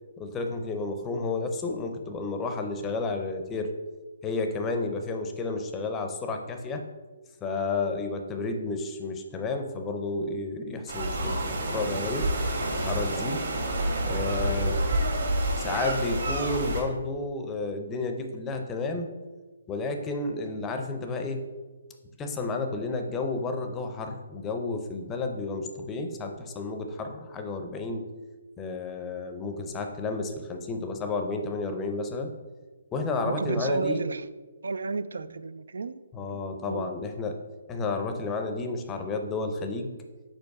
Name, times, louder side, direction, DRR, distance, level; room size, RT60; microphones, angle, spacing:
voice 1, 0.2-3.7 4.2-6.8 7.4-12.3 12.7-13.4 14.0-14.8 15.6-19.1 19.7-21.4 22.2-28.1 28.6-32.3 32.9-34.0 36.1-37.4 37.7-39.9, left 3 dB, 15° left, 0.5 m, -31 dB
sound 1, 10.9-16.8, right 1 dB, 60° right, 1.6 m, -28 dB
voice 2, 33.2-34.2 34.6-36.0 36.3-36.9, right 3 dB, 75° right, 0.3 m, -32 dB
5.2 x 4.4 x 4.7 m
hypercardioid pair, 155°, 0 cm